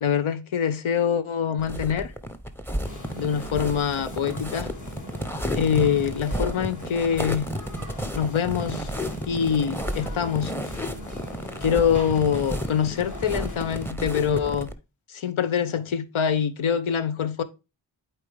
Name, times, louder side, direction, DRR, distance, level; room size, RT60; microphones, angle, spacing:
voice 1, 0.0-2.1 3.2-4.7 5.5-7.5 8.1-8.9 9.2-10.5 11.6-14.7 15.1-17.4, left 8 dB, 70° left, 0.9 m, -24 dB
sound 1, 1.6-14.7, equal, 5° left, 0.8 m, -32 dB
sound 2, 2.8-13.9, left 1 dB, 35° left, 1.9 m, -40 dB
8.2 x 4.4 x 3.5 m
cardioid pair, 50°, 50 cm